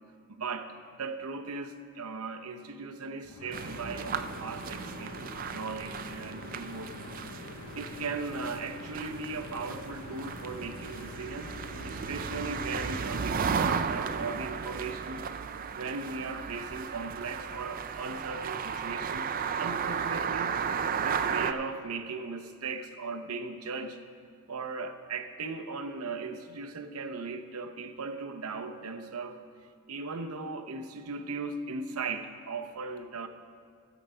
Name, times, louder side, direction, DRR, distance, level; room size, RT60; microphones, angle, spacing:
voice 1, 0.3-7.1 7.7-11.5 11.8-15.2 15.8-19.3 19.6-20.6 21.0-24.0 24.5-29.4 29.9-33.3, right 4 dB, 85° right, 7 dB, 0.8 m, -38 dB
sound 1, 2.7-2.8 3.9-6.0 6.5-8.6 9.8-11.2 11.9-12.0 13.1-13.2, equal, 40° left, 1.6 m, -55 dB
sound 2, 3.2-13.9, left 3 dB, 70° left, 0.6 m, -46 dB
sound 3, 3.5-21.5, right 6 dB, 40° right, 0.4 m, -34 dB
13.5 x 7.3 x 5.5 m, 2.1 s
head